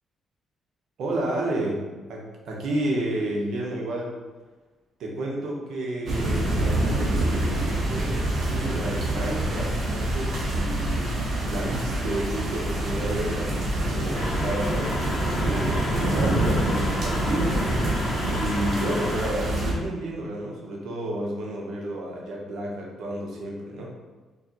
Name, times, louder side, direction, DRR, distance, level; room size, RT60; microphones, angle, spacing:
voice 1, 1.0-1.8 2.1-4.1 5.0-11.1 11.5-14.9 15.3-17.8 18.2-23.9, right 1 dB, 75° right, -2 dB, 0.9 m, -31 dB
sound 1, 6.1-19.7, right 1 dB, 55° right, 1.1 m, -26 dB
sound 2, 14.1-19.3, left 1 dB, 45° left, 0.7 m, -33 dB
4.0 x 3.0 x 3.0 m, 1.3 s
cardioid pair, 90°, 0 cm